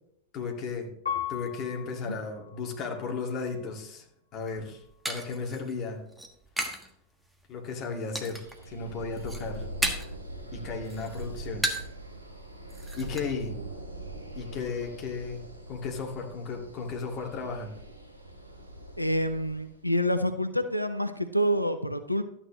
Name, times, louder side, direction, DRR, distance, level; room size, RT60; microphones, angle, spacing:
voice 1, 0.3-0.9 1.3-4.1 4.3-6.0 7.5-9.7 10.5-11.6 13.0-13.6 14.4-15.4 15.7-17.7, left 4 dB, 35° left, 1 dB, 2.1 m, -35 dB
Piano, 1.1-3.8 4.4-5.1, left 9 dB, 70° left, 1.5 m, -39 dB
sound 1, 4.3-6.9 7.2-7.7 8.2-8.7 9.0-10.2 10.6-12.0 12.3-12.4 12.7-13.2, right 1 dB, 5° right, 1.4 m, -34 dB
sound 2, 8.0-19.8, right 1 dB, 85° right, 3.2 m, -42 dB
voice 2, 19.0-22.2, equal, 90° left, 10 dB, 0.6 m, -27 dB
12.5 x 9.0 x 3.1 m, 0.75 s
figure-of-eight pair, 90°, 0 cm